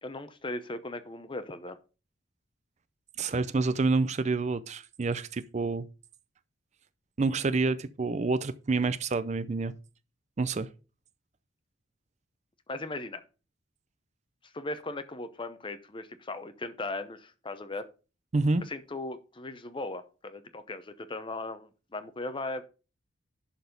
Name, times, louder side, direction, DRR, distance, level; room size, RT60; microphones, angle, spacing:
voice 1, 0.0-1.8 12.7-13.2 14.5-17.9 18.6-22.6, left 2 dB, 25° left, 0.7 m, -38 dB
voice 2, 3.2-5.9 7.2-9.7 10.4-10.7 18.3-18.6, right 3 dB, 35° right, 0.4 m, -28 dB
11.5 x 4.1 x 5.2 m
head